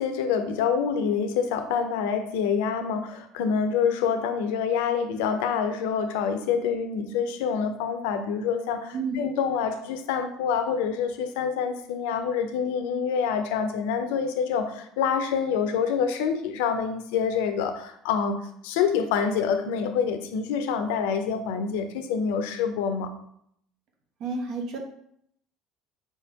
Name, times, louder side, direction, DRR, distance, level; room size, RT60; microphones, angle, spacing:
voice 1, 0.0-23.1, left 6 dB, 85° left, 8 dB, 0.5 m, -26 dB
voice 2, 24.2-24.8, right 4 dB, 65° right, 2 dB, 0.9 m, -30 dB
4.4 x 3.4 x 2.8 m, 0.70 s
supercardioid pair, 90°, 0 cm